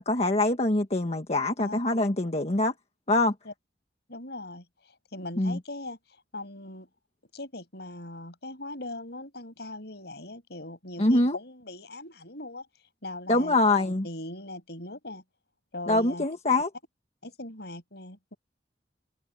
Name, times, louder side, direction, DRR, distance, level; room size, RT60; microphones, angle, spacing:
voice 1, 0.0-2.7 3.1-3.3 5.4-5.6 11.0-11.4 13.3-14.0 15.9-16.7, left 2 dB, 35° left, 1.5 m, -24 dB
voice 2, 4.1-4.6 5.1-6.0 6.3-6.9 7.3-12.7 13.0-13.6 14.0-15.2 15.7-16.3 17.2-18.3, left 2 dB, 65° left, 6.5 m, -40 dB
head